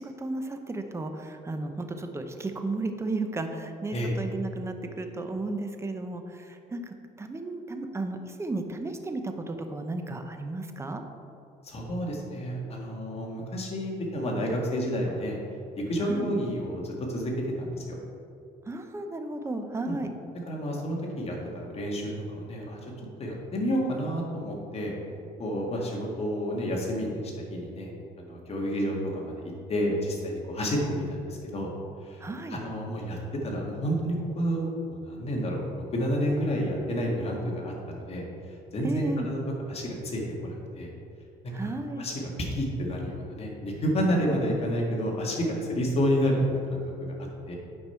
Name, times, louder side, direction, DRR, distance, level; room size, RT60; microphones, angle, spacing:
voice 1, 0.0-11.0 16.0-16.3 18.7-20.1 32.2-32.6 38.8-39.3 41.5-42.1, right 2 dB, 15° right, 6 dB, 0.7 m, -34 dB
voice 2, 11.6-15.4 15.8-17.3 17.6-18.0 19.9-20.0 20.5-22.8 23.2-24.9 25.4-27.9 28.2-29.4 29.7-31.7 32.0-32.2 32.5-35.6 35.9-39.4 39.7-40.9 41.6-47.1 47.5-47.6, equal, 35° left, -1 dB, 1.9 m, -30 dB
8.8 x 5.3 x 4.5 m, 2.6 s
cardioid pair, 110°, 17 cm